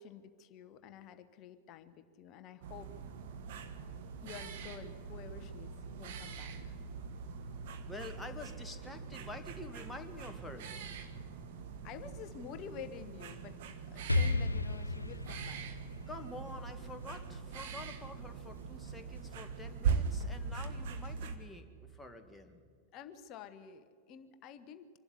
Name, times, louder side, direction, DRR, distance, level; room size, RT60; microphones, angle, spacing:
voice 1, 0.0-3.1 4.2-6.8 11.8-13.6 13.9-15.7 22.9-24.9, left 7 dB, 40° left, 10 dB, 1.1 m, -50 dB
sound 1, 2.6-21.4, right 5 dB, 55° right, 1.6 m, -41 dB
voice 2, 7.9-11.0 16.1-22.6, left 2 dB, 5° left, 4 dB, 2.0 m, -48 dB
Explosion, 14.1-17.9, left 2 dB, 85° left, 0.5 m, -35 dB
sound 2, 15.7-19.4, right 2 dB, 75° right, 4.7 m, -66 dB
25.0 x 12.0 x 9.6 m, 2.1 s
figure-of-eight pair, 90°, 0 cm